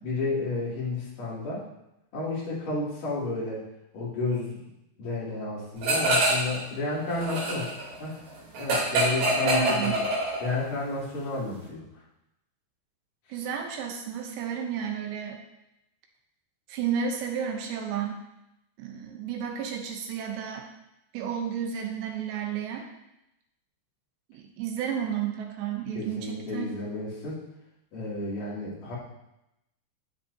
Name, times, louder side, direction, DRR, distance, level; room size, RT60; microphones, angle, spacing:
voice 1, 0.0-1.6 2.1-3.6 3.9-4.7 5.0-7.7 8.0-8.1 8.6-9.9 10.4-11.9 25.9-27.4 27.9-28.9, left 3 dB, 50° left, -8 dB, 4.0 m, -31 dB
sound 1, 5.8-6.6 6.9-10.7, right 1 dB, 55° right, 5.0 m, -25 dB
voice 2, 9.4-10.0 13.3-15.4 16.7-18.2 18.8-20.7 21.1-22.9 24.3-26.7, right 8 dB, 75° right, 3 dB, 3.0 m, -32 dB
13.5 x 7.3 x 2.8 m, 0.87 s
omnidirectional pair, 5.3 m